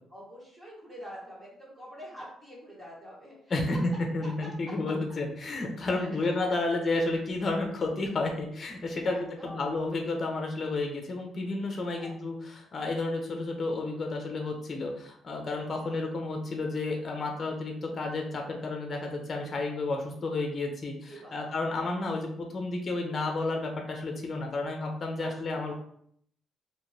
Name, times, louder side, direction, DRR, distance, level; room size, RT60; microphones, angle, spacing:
voice 1, 0.1-3.5 5.9-6.1 9.0-9.7 11.9-12.2 15.8-16.0 21.1-21.6 25.2-25.7, equal, 25° right, -6 dB, 1.4 m, -46 dB
voice 2, 3.5-25.7, left 2 dB, 40° left, 2 dB, 0.6 m, -31 dB
2.7 x 2.4 x 3.2 m, 0.66 s
cardioid pair, 90°, 0 cm